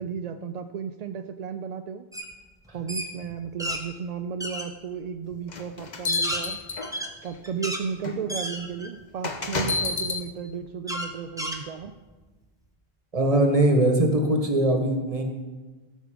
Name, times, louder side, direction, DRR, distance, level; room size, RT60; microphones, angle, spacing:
voice 1, 0.0-2.0 2.7-6.6 7.2-11.9, right 6 dB, 55° right, 7 dB, 0.5 m, -34 dB
sound 1, 2.1-2.3 2.7-3.8 4.4-4.7 5.3-5.4 5.9-7.9 8.3-9.0 9.5-9.6 10.9-12.1, equal, 5° right, 1.0 m, -32 dB
sound 2, 5.5-7.3 8.0-8.2 9.2-10.2, left 4 dB, 45° left, 1.0 m, -29 dB
voice 2, 13.1-15.2, right 1 dB, 35° right, 3 dB, 1.4 m, -21 dB
16.0 x 6.7 x 5.1 m, 1.3 s
omnidirectional pair, 1.0 m